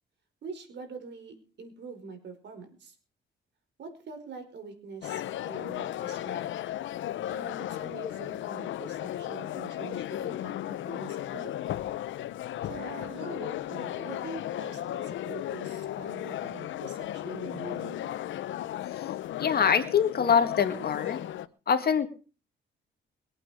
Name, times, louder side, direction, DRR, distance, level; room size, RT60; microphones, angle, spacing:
voice 1, 0.4-2.9 3.8-6.5 7.3-11.5 12.6-18.1, right 5 dB, 65° right, 7 dB, 4.9 m, -44 dB
sound 1, 5.0-21.5, left 12 dB, 75° left, 0.8 m, -35 dB
voice 2, 19.4-21.2 21.7-22.1, left 7 dB, 50° left, 7 dB, 2.0 m, -24 dB
22.5 x 8.9 x 5.0 m, 0.37 s
cardioid pair, 90°, 20 cm